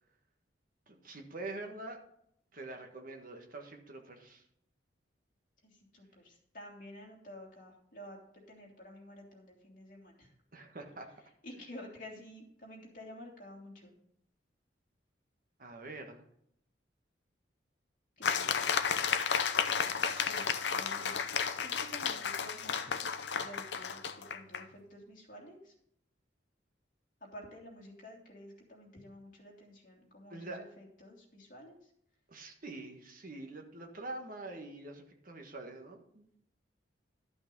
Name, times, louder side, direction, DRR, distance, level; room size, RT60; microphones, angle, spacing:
voice 1, 0.9-2.0 2.5-4.4 10.5-11.1 15.6-16.2 30.3-30.6 32.3-36.3, right 2 dB, 50° right, 3 dB, 1.5 m, -45 dB
voice 2, 5.6-8.2 8.5-10.3 11.4-13.9 18.2-19.0 19.9-23.1 23.4-25.7 27.3-31.8, left 1 dB, 45° left, -2 dB, 2.9 m, -51 dB
sound 1, 18.2-24.6, left 6 dB, 70° left, 0.7 m, -32 dB
12.5 x 6.1 x 5.4 m, 0.72 s
head